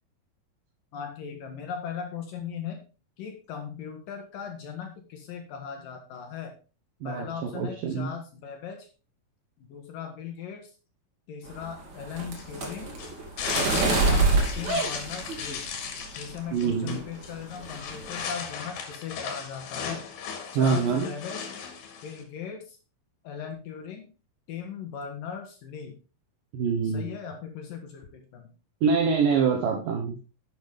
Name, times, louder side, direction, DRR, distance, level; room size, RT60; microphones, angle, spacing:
voice 1, 0.9-2.9 3.2-6.5 7.0-8.9 9.6-10.7 11.3-13.0 13.5-14.3 14.6-15.7 16.2-20.0 20.5-21.5 22.0-22.8 23.2-24.1 24.5-26.0 26.8-28.5, left 7 dB, 70° left, 4 dB, 2.9 m, -38 dB
voice 2, 7.5-8.1 16.5-17.0 20.5-21.1 26.5-27.1 28.8-30.2, right 5 dB, 70° right, 2 dB, 2.8 m, -25 dB
sound 1, 11.5-15.9 16.3-16.7 17.0-17.3 17.6-18.2, right 3 dB, 50° right, 3.6 m, -26 dB
sound 2, 12.4-22.2, left 6 dB, 90° left, 3.7 m, -36 dB
11.0 x 8.0 x 3.5 m, 0.32 s
omnidirectional pair, 4.3 m